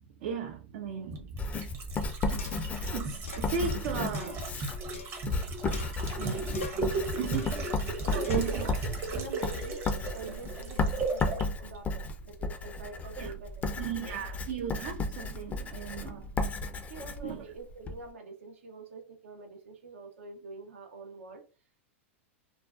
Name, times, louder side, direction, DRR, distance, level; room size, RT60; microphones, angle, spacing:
voice 1, 0.2-1.4 2.9-4.5 6.2-6.9 7.2-7.8 8.3-8.7 13.2-13.3 13.8-16.4 17.2-17.4, right 7 dB, 60° right, 0.4 m, -36 dB
sound 1, 1.1-11.5 11.7-11.8, right 3 dB, 35° right, 0.7 m, -36 dB
Writing, 1.4-18.0, left 3 dB, 20° left, 0.4 m, -34 dB
sound 2, 2.4-2.8 3.3-3.5 4.1-5.4 5.7-6.3 6.5-6.9 7.3-7.7 8.2-8.6, left 4 dB, 90° left, 0.6 m, -44 dB
voice 2, 8.0-8.8 9.1-9.8 10.1-14.3 16.0-16.3 16.8-21.4, right 3 dB, 80° right, 0.7 m, -45 dB
2.4 x 2.2 x 2.4 m
hypercardioid pair, 110°, 7 cm